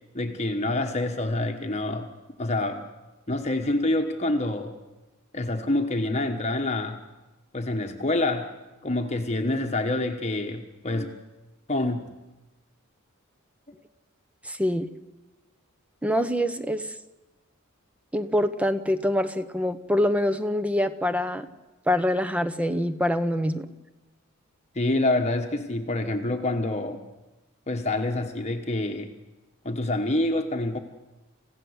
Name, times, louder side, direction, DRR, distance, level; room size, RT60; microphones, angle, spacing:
voice 1, 0.1-2.1 2.4-2.9 3.3-4.8 5.3-7.0 7.5-8.5 8.8-11.1 11.7-12.1 24.7-27.0 27.7-29.1 29.6-30.8, left 2 dB, 30° left, 4 dB, 1.3 m, -27 dB
voice 2, 14.4-14.9 16.0-16.8 18.1-21.5 21.9-23.7, left 1 dB, 5° right, 11 dB, 1.0 m, -25 dB
28.5 x 16.0 x 8.1 m, 1.1 s
head